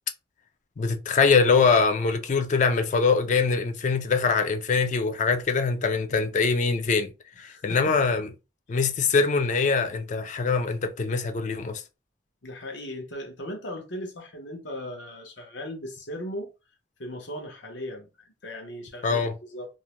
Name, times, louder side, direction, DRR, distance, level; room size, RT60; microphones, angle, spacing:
voice 1, 0.8-7.1 7.4-8.3 8.7-11.8 19.0-19.3, left 5 dB, 40° left, 0.4 m, -23 dB
voice 2, 7.4-8.0 12.4-16.5 17.0-19.7, left 1 dB, 85° left, 0.8 m, -38 dB
2.5 x 2.1 x 3.0 m
head